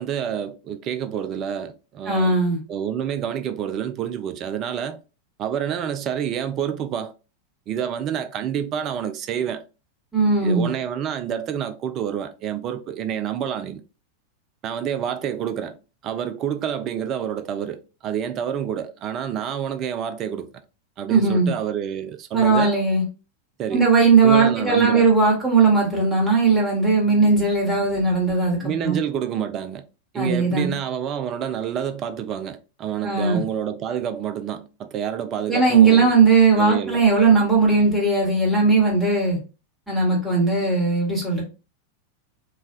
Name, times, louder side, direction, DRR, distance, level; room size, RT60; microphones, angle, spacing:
voice 1, 0.0-2.4 2.7-5.0 5.4-7.1 7.7-9.6 10.4-13.8 14.6-15.8 16.0-20.5 21.0-22.7 23.6-23.8 24.2-25.1 28.6-29.8 30.1-36.1 36.5-37.0, right 9 dB, 35° right, 0.3 m, -28 dB
voice 2, 2.1-2.6 10.1-10.7 21.1-21.5 22.3-23.0 23.7-29.0 30.1-30.7 33.0-33.4 35.5-39.4 39.9-41.4, right 4 dB, ahead, 1.1 m, -18 dB
3.2 x 2.1 x 2.4 m
figure-of-eight pair, 90°, 0 cm